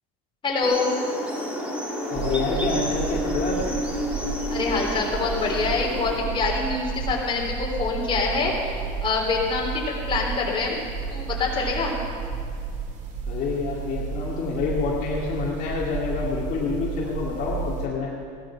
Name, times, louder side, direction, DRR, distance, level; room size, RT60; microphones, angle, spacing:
voice 1, 0.4-0.9 4.5-10.8 11.1-11.9, left 4 dB, 25° left, -2 dB, 3.7 m, -25 dB
sound 1, 0.6-6.2, equal, 5° right, 2.5 m, -30 dB
voice 2, 2.1-3.8 13.3-18.1, left 4 dB, 45° left, -5 dB, 2.4 m, -27 dB
sound 2, 2.1-17.9, right 6 dB, 40° right, 2.1 m, -32 dB
17.0 x 12.0 x 5.9 m, 2.2 s
cardioid pair, 135°, 20 cm